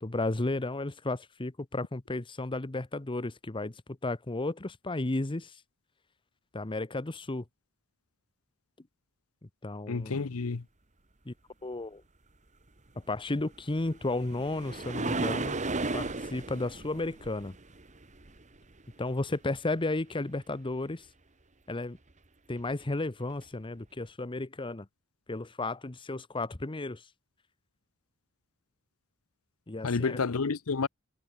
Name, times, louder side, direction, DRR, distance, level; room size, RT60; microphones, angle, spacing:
voice 1, 0.0-5.6 6.5-7.4 9.4-10.3 11.3-11.4 11.6-12.0 13.1-15.6 15.9-17.6 19.0-21.1 21.7-22.0 22.5-24.9 25.3-27.1 29.7-30.2, left 2 dB, 25° left, 0.9 m, -33 dB
voice 2, 9.9-10.6 29.8-30.9, left 4 dB, 75° left, 0.7 m, -30 dB
sound 1, 13.5-18.8 22.7-22.8 23.4-23.5, right 3 dB, 35° right, 1.8 m, -35 dB
head